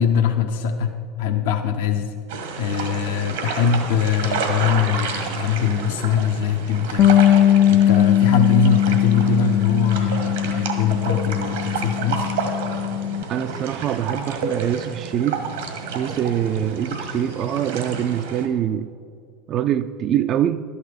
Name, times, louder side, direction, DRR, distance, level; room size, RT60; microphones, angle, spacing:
voice 1, 0.0-2.1 2.6-7.1 7.4-12.3, left 7 dB, 75° left, 0.7 m, -22 dB
sound 1, 2.3-18.5, right 5 dB, 85° right, 1.6 m, -30 dB
Bass guitar, 7.0-13.2, left 11 dB, 50° left, 0.3 m, -19 dB
voice 2, 13.3-15.4 15.9-18.9 19.5-20.6, right 10 dB, 50° right, 0.3 m, -24 dB
11.5 x 9.7 x 5.0 m
hypercardioid pair, 85°, 0 cm